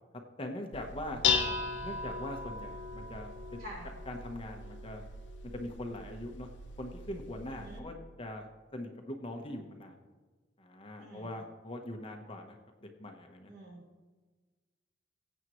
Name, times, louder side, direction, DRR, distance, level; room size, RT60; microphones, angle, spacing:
voice 1, 0.4-1.2 1.8-3.6 4.1-5.0 5.5-6.5 6.8-10.0 10.6-13.5, left 1 dB, 30° left, 3 dB, 1.0 m, -42 dB
Dishes pots and pans, 0.7-7.8, left 5 dB, 85° left, 0.9 m, -37 dB
voice 2, 1.2-1.6 3.6-3.9 7.5-7.8 11.0-11.3 13.5-13.8, equal, 55° right, -3 dB, 4.0 m, -46 dB
20.5 x 8.1 x 3.1 m, 1.4 s
head